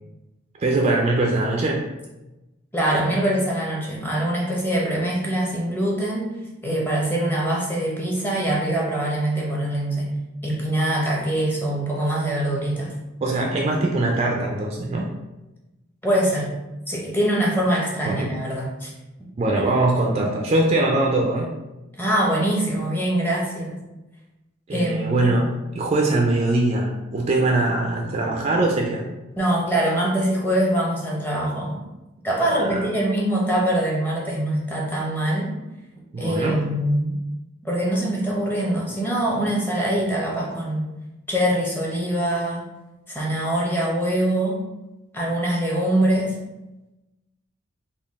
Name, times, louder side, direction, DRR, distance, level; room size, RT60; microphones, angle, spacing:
voice 1, 0.6-1.9 13.2-15.1 18.0-18.3 19.4-21.5 24.7-29.1 32.5-32.8 36.1-36.6, right 2 dB, 30° right, -1 dB, 0.3 m, -22 dB
voice 2, 2.7-6.3 6.6-10.1 10.4-12.9 16.0-16.5 16.9-18.9 21.9-23.8 24.7-25.3 29.4-31.8 32.2-35.5 36.2-37.2 37.6-40.9 41.3-42.6 43.1-44.6 45.1-46.4, right 1 dB, 10° left, -3 dB, 0.7 m, -23 dB
3.7 x 2.3 x 3.5 m, 1.0 s
head